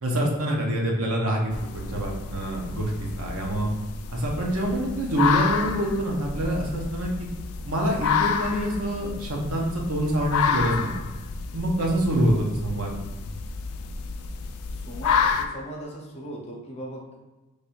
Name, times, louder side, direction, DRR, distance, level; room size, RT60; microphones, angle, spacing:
voice 1, 0.0-2.9 3.2-3.7 4.1-7.3 7.6-10.9 11.5-12.9, right 1 dB, 70° right, -1 dB, 0.9 m, -26 dB
sound 1, 1.5-15.5, left 6 dB, 75° left, 0.3 m, -29 dB
voice 2, 14.8-17.2, right 1 dB, 30° left, -2 dB, 0.8 m, -38 dB
3.3 x 2.6 x 4.3 m, 1.1 s
head